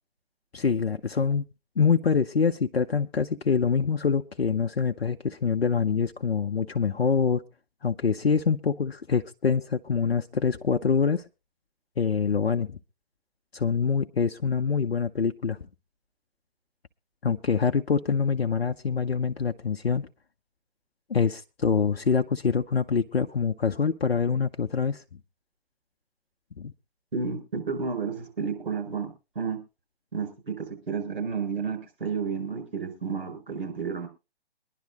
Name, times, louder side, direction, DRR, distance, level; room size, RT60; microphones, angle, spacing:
voice 1, 0.5-1.5 1.8-7.4 7.8-11.2 12.0-12.8 13.5-15.6 17.2-20.1 21.1-25.0 26.6-26.7, left 6 dB, 75° left, 6 dB, 0.8 m, -25 dB
voice 2, 27.1-29.1 29.4-29.6 30.1-34.1, right 5 dB, 55° right, 2 dB, 5.5 m, -31 dB
23.5 x 11.0 x 2.5 m, 0.29 s
figure-of-eight pair, 135°, 31 cm